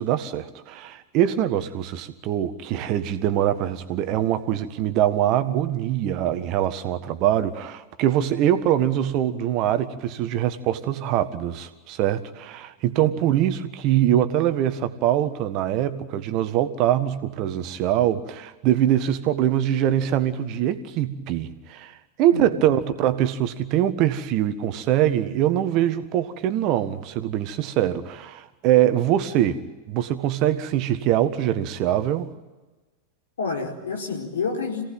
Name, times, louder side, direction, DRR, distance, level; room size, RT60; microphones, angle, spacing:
voice 1, 0.0-29.6 29.9-32.3, right 11 dB, 40° right, 11 dB, 1.6 m, -23 dB
voice 2, 22.3-22.8 33.4-34.9, left 4 dB, 65° left, 1 dB, 4.6 m, -29 dB
27.0 x 17.5 x 9.0 m, 1.2 s
figure-of-eight pair, 90°, 0 cm